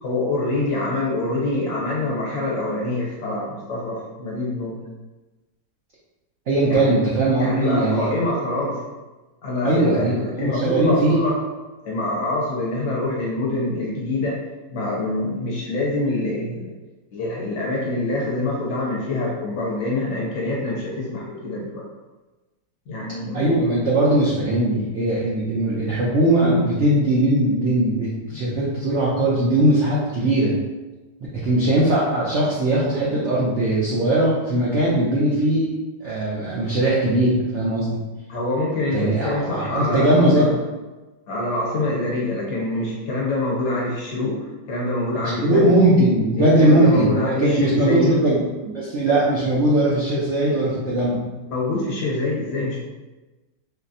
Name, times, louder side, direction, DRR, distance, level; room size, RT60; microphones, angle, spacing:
voice 1, 0.0-4.8 6.6-6.9 7.4-8.8 9.4-11.4 11.8-14.4 14.7-16.7 17.1-21.8 22.9-23.5 38.3-40.5 41.3-45.6 46.4-48.2 51.5-52.8, left 2 dB, 70° left, -5 dB, 1.5 m, -25 dB
voice 2, 6.5-8.1 9.6-11.2 23.3-30.5 31.4-35.7 36.0-38.0 38.9-40.5 45.4-51.2, right 1 dB, 85° right, -6 dB, 0.6 m, -19 dB
4.2 x 2.0 x 2.6 m, 1.1 s
omnidirectional pair, 2.0 m